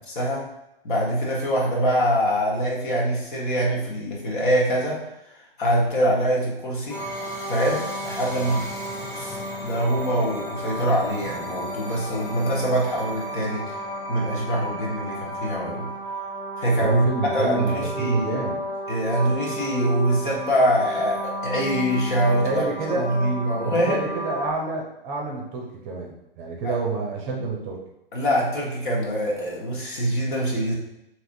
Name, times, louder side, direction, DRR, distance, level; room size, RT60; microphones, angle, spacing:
voice 1, 0.1-0.4 0.8-5.0 5.6-7.0 7.5-8.7 9.1-9.4 9.6-13.7 14.1-15.9 16.6-17.1 17.3-18.4 18.9-24.0 26.6-26.7 28.1-30.7, equal, 55° left, -3 dB, 1.4 m, -24 dB
sound 1, 6.9-24.5, right 1 dB, 10° left, 0.4 m, -32 dB
voice 2, 16.7-18.6 22.2-23.3 23.6-27.8, right 3 dB, 25° right, -1 dB, 0.7 m, -29 dB
4.7 x 3.0 x 2.6 m, 0.86 s
figure-of-eight pair, 120°, 29 cm